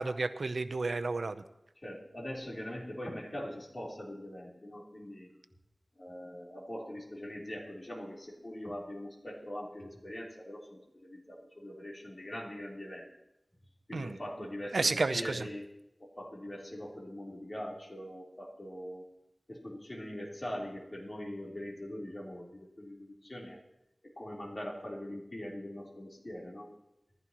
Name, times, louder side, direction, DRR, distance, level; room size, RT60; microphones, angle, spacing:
voice 1, 0.0-1.3 13.9-14.2 14.7-15.5, right 3 dB, 85° right, 10 dB, 0.7 m, -31 dB
voice 2, 1.8-5.3 6.0-13.1 13.9-15.7 16.0-19.1 19.5-23.6 24.0-26.7, left 1 dB, 45° left, -3 dB, 3.9 m, -42 dB
20.5 x 15.0 x 3.1 m, 0.89 s
cardioid pair, 40°, 0 cm